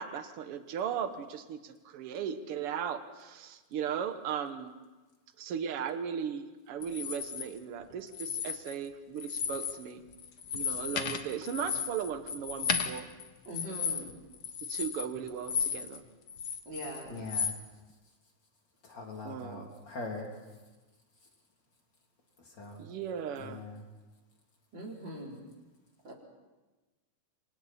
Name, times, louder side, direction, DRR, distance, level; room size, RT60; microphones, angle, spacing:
voice 1, 0.0-4.7 5.4-10.0 10.5-13.1 14.7-16.0 19.2-19.7 22.8-23.6, right 8 dB, 55° right, 9 dB, 1.7 m, -37 dB
sound 1, 6.8-7.4 8.1-8.9 9.2-9.8 10.1-16.0 16.3-17.6, left 7 dB, 70° left, 0.9 m, -34 dB
voice 2, 13.5-14.1 16.7-17.2 24.7-25.4 26.0-26.1, equal, 35° right, -2 dB, 4.6 m, -41 dB
voice 3, 17.1-17.5 18.9-20.3 22.6-22.8 23.4-23.8, left 3 dB, 35° left, 0 dB, 3.8 m, -41 dB
29.0 x 25.0 x 4.4 m, 1.2 s
omnidirectional pair, 3.7 m